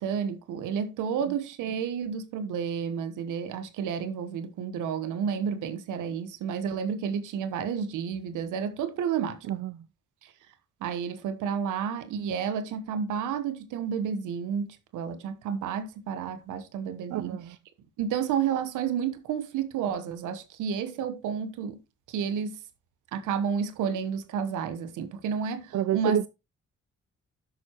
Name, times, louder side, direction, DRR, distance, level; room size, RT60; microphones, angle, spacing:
voice 1, 0.0-9.4 10.2-10.3 10.8-17.4 18.0-21.8 22.1-22.6 23.1-26.2, right 7 dB, 90° right, 1.0 m, -31 dB
voice 2, 9.5-9.9 17.1-17.6 25.7-26.3, right 12 dB, 65° right, 0.5 m, -28 dB
11.5 x 6.2 x 3.0 m
supercardioid pair, 45°, 30 cm